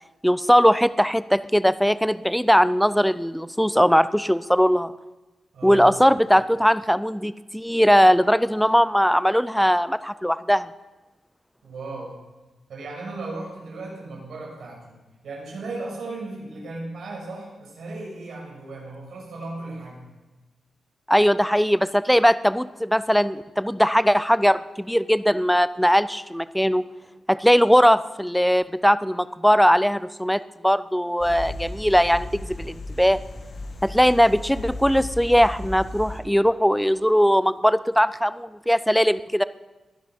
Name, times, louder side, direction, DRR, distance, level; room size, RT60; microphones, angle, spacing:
voice 1, 0.2-4.9 5.6-10.7 21.1-26.8 27.3-33.2 33.8-39.4, equal, ahead, 15 dB, 0.4 m, -20 dB
voice 2, 5.5-5.9 11.6-12.1 12.7-15.0 15.2-20.0, right 2 dB, 75° right, -2 dB, 6.5 m, -36 dB
sound 1, 31.2-36.2, left 2 dB, 45° left, 1.7 m, -35 dB
21.5 x 10.5 x 5.3 m, 1.1 s
wide cardioid pair, 165°, 0 cm